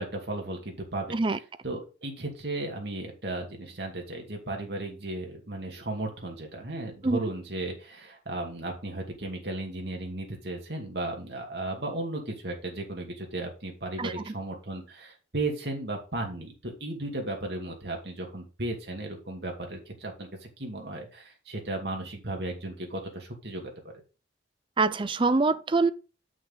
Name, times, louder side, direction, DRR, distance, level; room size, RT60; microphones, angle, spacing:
voice 1, 0.0-23.9, right 2 dB, 60° right, 2.4 m, -35 dB
voice 2, 14.0-14.3 24.8-25.9, right 3 dB, 25° right, 0.5 m, -25 dB
7.6 x 6.3 x 4.0 m
head